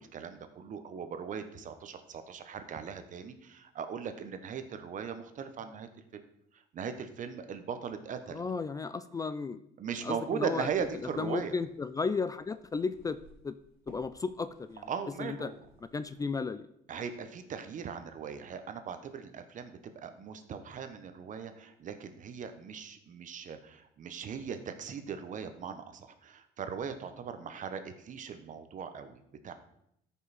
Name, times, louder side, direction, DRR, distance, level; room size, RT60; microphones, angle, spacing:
voice 1, 0.0-6.2 6.5-8.4 9.8-11.6 14.9-15.6 16.9-29.5, right 7 dB, 50° right, 9 dB, 1.0 m, -39 dB
voice 2, 8.3-9.6 10.0-10.7 11.2-13.2 13.4-13.6 13.9-14.8 15.2-15.5 15.9-16.7, left 4 dB, 20° left, 13 dB, 0.3 m, -34 dB
sound 1, 10.7-16.4, equal, 20° right, 4.2 m, -60 dB
13.5 x 5.6 x 4.2 m, 0.75 s
cardioid pair, 110°, 17 cm